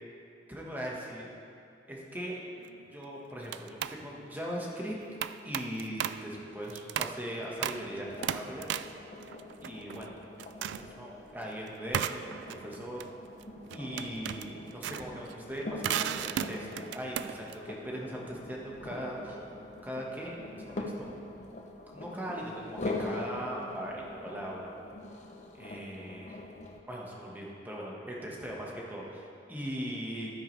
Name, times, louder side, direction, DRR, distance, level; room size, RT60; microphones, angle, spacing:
voice 1, 0.5-1.3 1.9-2.4 2.9-5.0 5.4-8.7 9.6-10.1 10.5-13.1 13.7-19.4 19.8-21.1 21.9-24.7 25.5-26.4 26.9-30.3, equal, 10° right, -3 dB, 1.4 m, -39 dB
sound 1, 2.6-2.9 3.4-4.0 5.2-6.3 6.7-7.2 7.6-7.9 8.2-10.1 10.4-10.9 11.9-17.6, right 9 dB, 90° right, 0.3 m, -36 dB
sound 2, 7.6-26.8, left 2 dB, 45° left, 0.7 m, -43 dB
12.5 x 9.5 x 3.3 m, 2.5 s
head